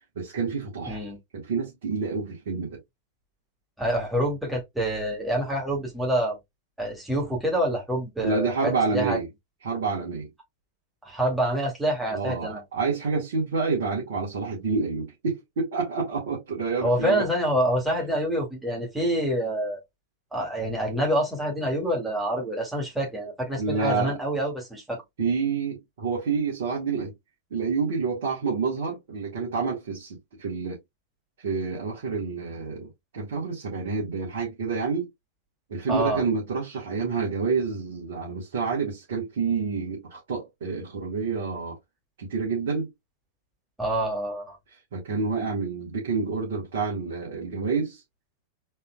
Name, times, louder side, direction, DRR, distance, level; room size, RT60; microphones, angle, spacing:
voice 1, 0.2-1.0 1.3-2.8 8.2-9.3 9.6-10.3 12.1-17.2 23.6-24.1 25.2-27.1 27.5-30.8 31.4-35.1 35.7-41.8 42.2-42.9 44.9-48.0, right 4 dB, 60° right, 1.9 m, -28 dB
voice 2, 0.9-1.2 3.8-6.4 6.8-9.2 11.0-12.6 16.8-19.8 20.3-25.0 35.9-36.2 43.8-44.6, right 1 dB, 5° right, 2.3 m, -27 dB
4.3 x 3.6 x 2.4 m
figure-of-eight pair, 90°, 0 cm